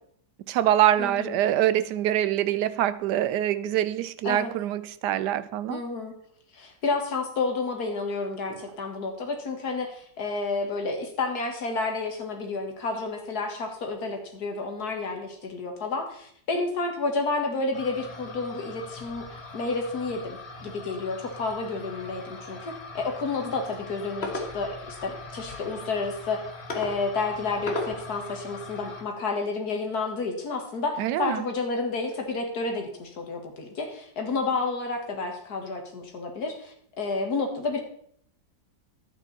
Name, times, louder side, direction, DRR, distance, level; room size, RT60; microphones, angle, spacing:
voice 1, 0.5-5.8 8.5-8.6 31.0-31.5, right 12 dB, 80° right, 1.2 m, -24 dB
voice 2, 1.0-1.4 4.2-4.5 5.7-6.1 6.5-26.5 26.7-37.8, left 3 dB, 65° left, 2.2 m, -30 dB
sound 1, 17.7-29.0, left 2 dB, 40° left, 1.6 m, -39 dB
11.5 x 8.8 x 4.1 m
omnidirectional pair, 1.8 m